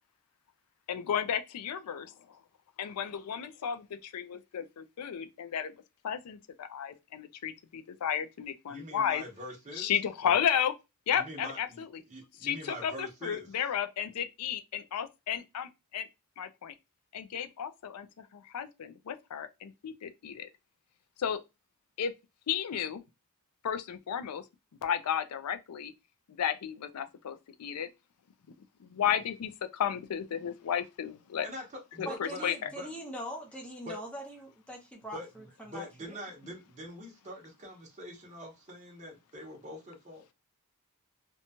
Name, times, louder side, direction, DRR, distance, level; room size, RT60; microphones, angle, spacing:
voice 1, 0.9-2.1 2.8-5.7 6.0-9.2 9.8-10.7 11.1-11.9 12.4-16.1 16.4-16.7 17.1-20.5 21.2-21.4 22.0-22.1 22.5-23.0 23.6-24.4 24.8-25.9 26.3-27.9 28.8-31.5 32.0-32.7, left 8 dB, 90° left, 0.4 m, -33 dB
voice 2, 8.7-9.9 10.2-10.4 11.1-13.5 31.4-33.0 33.8-34.0 35.1-40.2, equal, 30° right, 0.8 m, -44 dB
voice 3, 32.1-36.2, equal, 5° left, 0.7 m, -42 dB
2.8 x 2.2 x 2.7 m
head